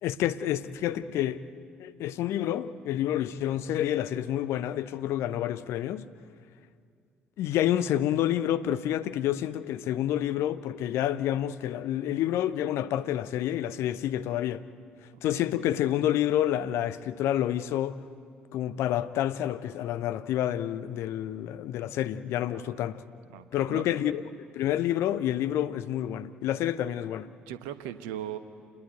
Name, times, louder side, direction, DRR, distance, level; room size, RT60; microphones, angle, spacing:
voice 1, 0.0-1.4 1.8-6.0 7.4-14.6 15.2-18.0 18.5-23.0 23.5-24.2 24.5-27.3, left 12 dB, 60° left, 0.7 m, -28 dB
voice 2, 23.3-24.0 27.5-28.4, right 11 dB, 65° right, 1.1 m, -39 dB
28.0 x 20.5 x 8.2 m
figure-of-eight pair, 45°, 5 cm